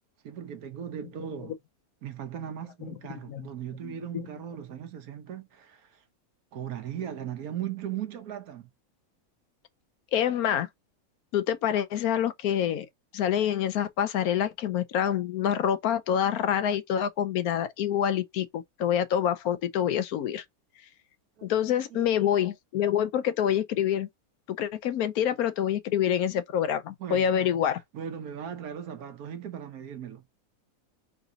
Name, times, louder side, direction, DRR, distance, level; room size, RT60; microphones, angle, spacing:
voice 1, 0.2-1.6 2.0-6.0 6.5-8.7 21.4-21.5 21.9-22.3 27.0-27.3 27.9-30.2, right 9 dB, 90° right, 1.3 m, -38 dB
voice 2, 3.1-3.4 3.8-4.2 10.1-10.7 11.3-12.9 13.1-20.4 21.4-24.1 24.5-27.8, left 9 dB, 90° left, 1.2 m, -26 dB
3.9 x 2.7 x 4.8 m
omnidirectional pair, 1.5 m